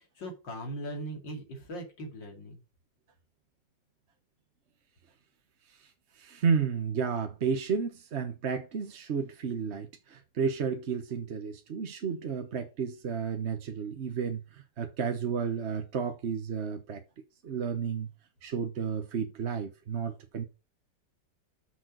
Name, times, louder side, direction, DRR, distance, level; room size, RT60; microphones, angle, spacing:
voice 1, 0.0-2.6, right 1 dB, 75° left, 3.2 m, -40 dB
voice 2, 6.2-17.0 17.4-18.1 18.4-20.5, right 6 dB, 45° right, 1.0 m, -32 dB
6.4 x 6.0 x 6.0 m
omnidirectional pair, 2.0 m